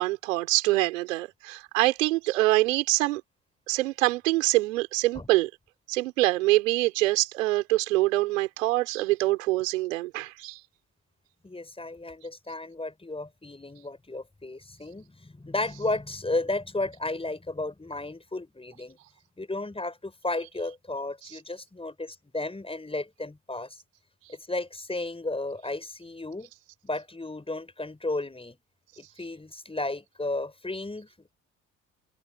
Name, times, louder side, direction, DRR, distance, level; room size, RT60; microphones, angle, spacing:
voice 1, 0.0-3.2 3.7-5.5 5.9-10.6, right 18 dB, 85° right, 5.3 m, -25 dB
voice 2, 11.4-19.0 19.4-23.8 24.3-26.5 26.8-28.6 29.0-31.3, left 2 dB, 15° left, 6.0 m, -33 dB
hypercardioid pair, 60°, 38 cm